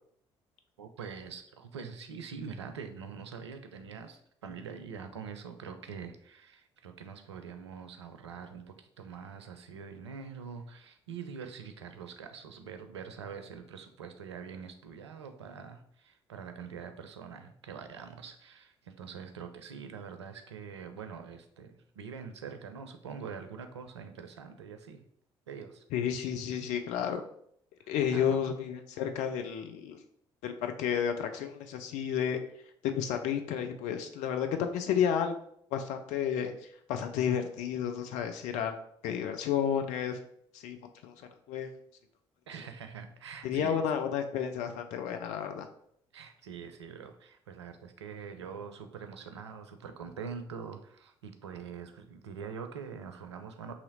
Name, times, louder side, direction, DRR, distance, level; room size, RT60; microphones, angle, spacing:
voice 1, 0.8-25.0 25.5-25.8 27.8-28.4 42.5-43.8 46.1-53.7, right 6 dB, 80° right, 7 dB, 0.4 m, -44 dB
voice 2, 25.9-27.2 27.9-30.0 30.4-32.4 32.8-35.3 35.7-38.7 39.0-40.2 40.5-40.8 41.0-41.7 43.4-45.7, left 8 dB, 55° left, 6 dB, 0.4 m, -31 dB
2.9 x 2.8 x 4.0 m, 0.67 s
figure-of-eight pair, 45°, 14 cm